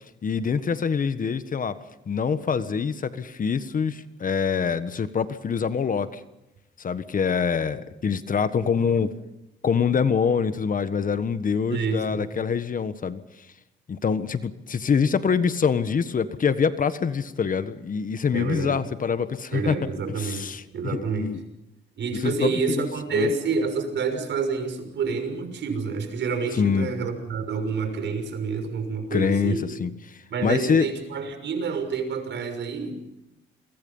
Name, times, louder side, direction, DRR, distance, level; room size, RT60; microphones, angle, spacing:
voice 1, 0.2-1.8 2.1-6.2 6.8-9.1 9.6-13.2 13.9-19.8 20.2-21.4 22.2-23.3 26.5-26.9 29.1-30.1 30.4-30.9, left 6 dB, 45° left, 12 dB, 1.4 m, -25 dB
voice 2, 11.7-12.2 18.3-18.8 19.5-20.5 20.7-21.3 22.0-29.7 30.3-33.0, right 5 dB, 65° right, 7 dB, 6.1 m, -28 dB
29.5 x 23.0 x 5.6 m, 0.92 s
cardioid pair, 90°, 20 cm